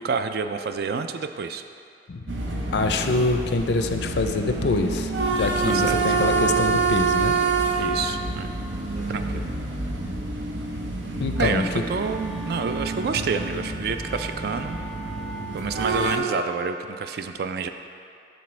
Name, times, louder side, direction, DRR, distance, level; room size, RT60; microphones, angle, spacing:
voice 1, 0.0-1.6 5.7-6.0 7.8-8.5 9.1-9.5 11.4-14.8 15.5-17.7, right 5 dB, 55° right, 8 dB, 0.3 m, -28 dB
sound 1, 2.3-16.2, right 4 dB, 85° right, 0.8 m, -27 dB
sound 2, 2.4-9.4, equal, 35° right, 0.9 m, -47 dB
voice 2, 2.7-7.4 11.2-11.7, left 3 dB, 60° left, 6 dB, 0.4 m, -25 dB
Wind instrument woodwind instrument, 11.3-16.2, right 1 dB, ahead, 0.5 m, -41 dB
11.5 x 4.1 x 3.2 m, 2.5 s
head